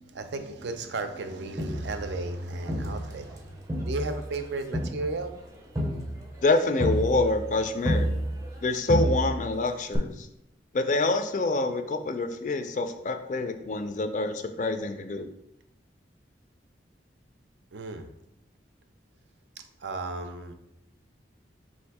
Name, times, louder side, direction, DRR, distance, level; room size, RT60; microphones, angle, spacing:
voice 1, 0.0-3.6 3.9-5.3 17.7-18.1 19.8-20.5, right 3 dB, 75° right, 8 dB, 0.5 m, -34 dB
Crowd, 1.6-3.4 3.7-8.6 8.9-9.6 9.9-10.0, equal, 20° right, 0.5 m, -30 dB
voice 2, 6.4-8.1 8.6-10.1 10.7-15.3, left 2 dB, 40° left, 8 dB, 0.3 m, -26 dB
3.4 x 2.6 x 4.6 m, 0.80 s
head